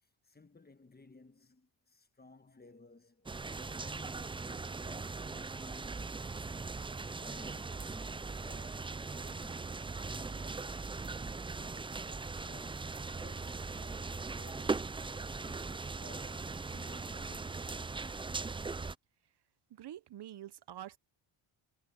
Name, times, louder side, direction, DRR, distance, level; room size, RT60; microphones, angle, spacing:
voice 1, 0.0-6.4 6.8-10.8 11.5-12.9 13.2-15.0 15.3-17.7, left 3 dB, 20° left, 1.4 m, -59 dB
sound 1, 3.3-19.0, right 4 dB, 10° right, 0.3 m, -40 dB
voice 2, 19.7-21.0, right 12 dB, 55° right, 0.8 m, -46 dB
cardioid pair, 115°, 50 cm